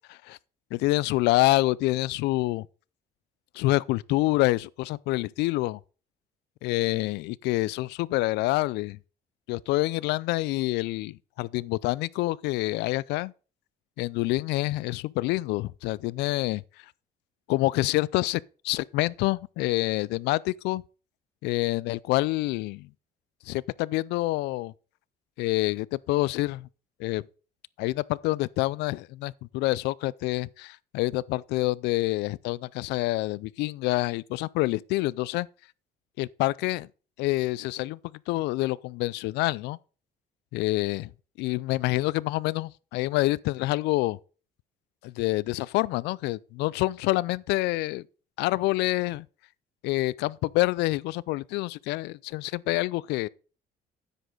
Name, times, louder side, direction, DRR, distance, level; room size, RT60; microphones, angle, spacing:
voice 1, 0.7-2.7 3.5-5.8 6.6-9.0 9.5-13.3 14.0-16.6 17.5-20.8 21.4-22.9 23.5-24.7 25.4-26.7 27.0-27.2 27.8-35.5 36.2-36.9 37.2-38.0 38.3-39.8 40.5-41.1 41.4-44.2 45.0-48.0 48.4-49.3 49.8-53.3, left 19 dB, 90° left, 0.4 m, -27 dB
10.0 x 8.2 x 3.8 m
cardioid pair, 110°, 17 cm